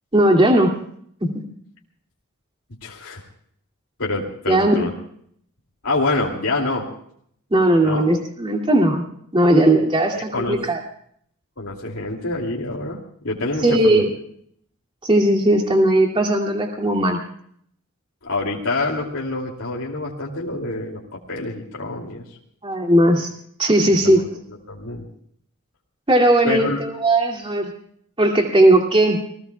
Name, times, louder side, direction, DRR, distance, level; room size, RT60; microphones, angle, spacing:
voice 1, 0.1-0.7 1.2-1.3 4.5-4.9 7.5-9.0 9.3-10.8 13.6-14.1 15.0-17.2 22.6-23.3 23.6-24.2 26.1-27.7 28.2-29.2, right 1 dB, 25° right, 0 dB, 2.5 m, -17 dB
voice 2, 2.8-3.2 4.0-4.9 5.8-6.9 7.8-8.0 10.1-10.6 11.6-14.1 18.2-22.2 24.0-24.2 24.5-25.1 26.4-26.8, left 2 dB, 70° left, -3 dB, 2.7 m, -26 dB
29.5 x 21.0 x 2.3 m, 0.65 s
head